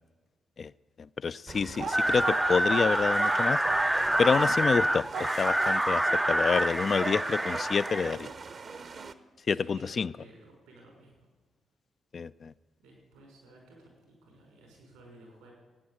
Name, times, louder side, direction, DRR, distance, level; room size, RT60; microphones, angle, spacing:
voice 1, 1.2-3.6 4.2-8.3 9.5-10.1 12.1-12.5, left 5 dB, 55° left, 14 dB, 0.4 m, -28 dB
sound 1, 1.5-9.1, right 4 dB, 55° right, 0.9 m, -37 dB
sound 2, 1.9-8.1, right 1 dB, 10° right, 0.4 m, -27 dB
voice 2, 9.4-11.3 12.8-15.5, right 2 dB, 90° right, 0 dB, 5.4 m, -55 dB
16.5 x 9.3 x 8.6 m, 1.3 s
hypercardioid pair, 45°, 0 cm